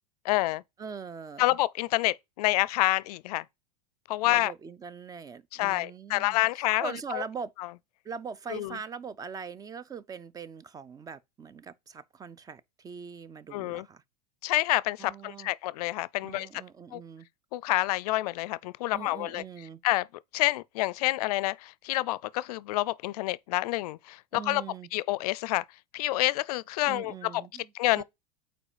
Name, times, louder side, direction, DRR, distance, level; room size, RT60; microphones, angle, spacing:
voice 1, 0.2-0.6 1.4-3.4 4.1-4.5 5.5-7.2 8.5-8.8 13.5-13.9 14.4-16.5 16.9-17.0 17.5-19.4 19.8-20.1 20.3-24.6 24.9-25.6 25.9-27.1 27.7-28.0, left 18 dB, 75° left, 0.4 m, -28 dB
voice 2, 0.8-1.6 4.2-7.5 8.0-14.0 15.0-15.5 16.2-17.3 18.9-19.8 24.3-24.9 26.9-28.0, right 6 dB, 20° right, 0.4 m, -42 dB
4.9 x 4.4 x 4.9 m
supercardioid pair, 120°, 20 cm